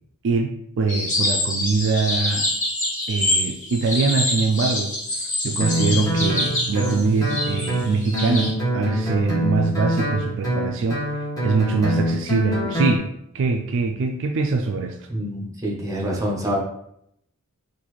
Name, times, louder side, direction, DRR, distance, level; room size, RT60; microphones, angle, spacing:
voice 1, 0.2-2.5 3.1-4.9 5.4-13.1 13.3-15.0, right 4 dB, 60° right, 4 dB, 0.4 m, -23 dB
sound 1, 0.9-8.5, left 1 dB, 35° left, 1.0 m, -25 dB
sound 2, 5.6-10.7, right 4 dB, 75° left, 0.5 m, -34 dB
Guitar, 5.6-13.0, equal, 15° left, 1.3 m, -25 dB
voice 2, 15.1-16.6, equal, 15° right, -2 dB, 0.8 m, -26 dB
4.0 x 2.6 x 3.1 m, 0.75 s
head